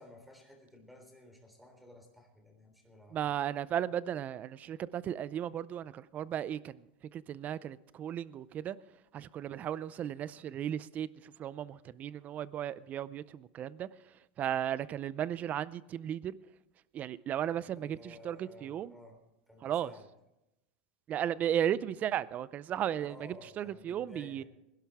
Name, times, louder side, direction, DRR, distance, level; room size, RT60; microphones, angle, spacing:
voice 1, 0.0-3.2 17.8-19.2 19.5-20.1 23.0-24.4, left 1 dB, ahead, 3.5 m, -54 dB
voice 2, 3.1-6.8 7.1-8.8 9.1-13.9 14.4-16.4 16.9-18.9 19.6-19.9 21.1-24.4, right 10 dB, 30° right, 0.5 m, -35 dB
21.0 x 11.5 x 3.5 m
supercardioid pair, 140°, 5 cm